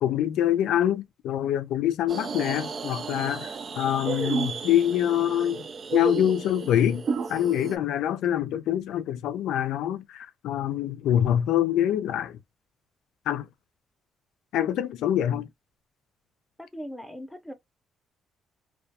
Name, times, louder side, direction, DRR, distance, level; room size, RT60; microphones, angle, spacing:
voice 1, 0.0-5.7 5.9-7.0 7.3-12.4 13.3-13.5 14.5-15.5, left 11 dB, 85° left, 0.3 m, -25 dB
sound 1, 2.1-7.8, right 4 dB, 45° right, 0.3 m, -33 dB
voice 2, 16.6-17.5, equal, ahead, 0.6 m, -41 dB
2.2 x 2.2 x 2.7 m
cardioid pair, 90°, 0 cm